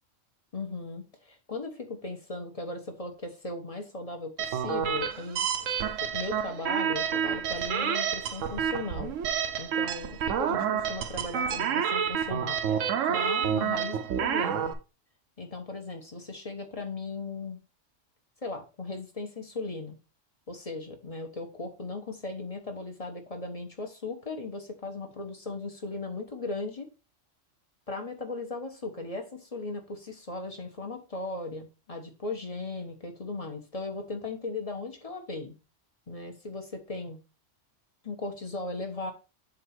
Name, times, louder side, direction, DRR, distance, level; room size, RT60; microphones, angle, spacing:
voice 1, 0.5-5.5 6.0-9.1 9.6-14.7 15.4-17.6 18.4-20.0 20.5-26.9 27.9-35.5 36.1-37.2 38.0-39.1, left 3 dB, 30° left, 4 dB, 1.2 m, -37 dB
sound 1, 4.4-14.7, right 8 dB, 80° right, 1.1 m, -29 dB
7.4 x 2.8 x 6.0 m, 0.31 s
omnidirectional pair, 1.3 m